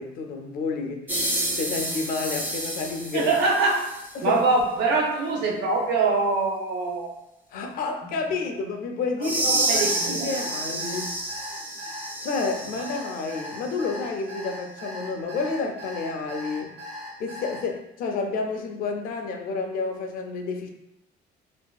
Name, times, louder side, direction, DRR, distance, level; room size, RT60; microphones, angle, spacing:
voice 1, 0.0-3.3 4.1-4.4 7.5-11.1 12.2-16.8 17.2-20.7, left 4 dB, 55° left, 4 dB, 0.4 m, -30 dB
sound 1, 1.1-4.1 9.2-13.3, right 1 dB, 10° right, 0.5 m, -29 dB
voice 2, 3.1-3.8 4.2-7.1 9.2-10.3, right 3 dB, 80° right, 0 dB, 0.6 m, -24 dB
Alarm, 9.8-17.6, left 1 dB, 60° right, 1.3 m, -38 dB
2.6 x 2.3 x 2.2 m, 0.88 s
cardioid pair, 135°, 18 cm